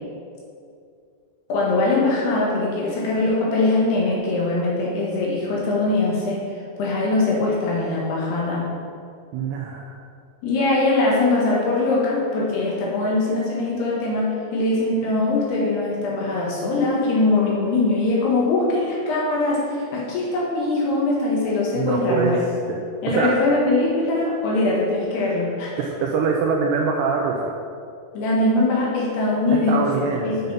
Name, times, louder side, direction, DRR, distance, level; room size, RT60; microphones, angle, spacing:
voice 1, 1.5-6.4 6.8-8.7 10.4-22.4 23.0-25.8 28.1-29.9 30.2-30.5, left 2 dB, 65° left, -4 dB, 3.4 m, -22 dB
voice 2, 9.3-9.9 21.8-22.3 22.7-22.8 23.1-23.3 25.8-27.5 29.5-30.5, right 5 dB, 80° right, 1 dB, 2.5 m, -23 dB
9.1 x 5.4 x 5.6 m, 2.4 s
omnidirectional pair, 5.4 m